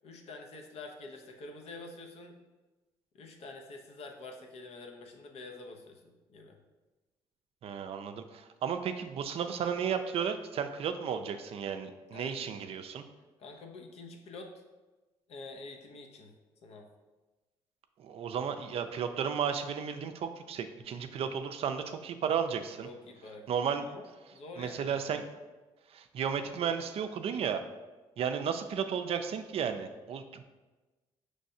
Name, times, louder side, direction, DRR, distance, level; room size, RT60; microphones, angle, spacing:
voice 1, 0.0-2.4 3.1-6.6 12.1-12.5 13.4-14.5 15.3-16.3 16.6-16.9 22.8-25.0, left 3 dB, 65° left, 3 dB, 0.7 m, -47 dB
voice 2, 7.6-13.0 18.0-22.9 23.5-23.9 24.6-25.2 25.9-27.6 28.2-30.4, right 7 dB, 60° right, 8 dB, 0.4 m, -33 dB
5.3 x 3.2 x 2.7 m, 1.2 s
supercardioid pair, 65°, 11 cm